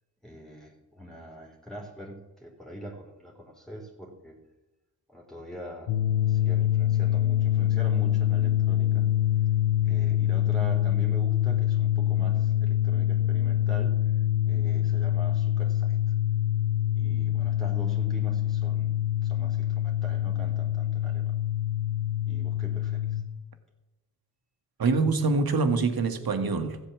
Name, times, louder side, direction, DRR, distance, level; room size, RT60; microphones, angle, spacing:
voice 1, 0.2-4.4 5.1-5.9 6.3-9.1 9.8-14.0 14.4-16.0 16.9-21.4 22.3-23.2, right 1 dB, ahead, 3.9 m, -42 dB
sound 1, 5.9-23.2, left 12 dB, 70° left, 1.1 m, -25 dB
voice 2, 24.8-26.8, right 4 dB, 55° right, 1.9 m, -25 dB
14.5 x 8.5 x 7.4 m
supercardioid pair, 50°, 44 cm